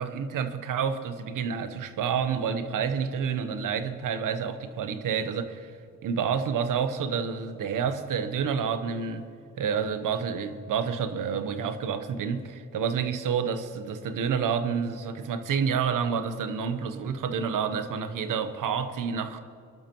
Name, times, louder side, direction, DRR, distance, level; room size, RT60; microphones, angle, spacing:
voice 1, 0.0-5.7 6.0-9.3 9.6-19.4, right 6 dB, 85° right, 10 dB, 1.0 m, -29 dB
24.0 x 12.5 x 3.1 m, 2.4 s
cardioid pair, 80°, 31 cm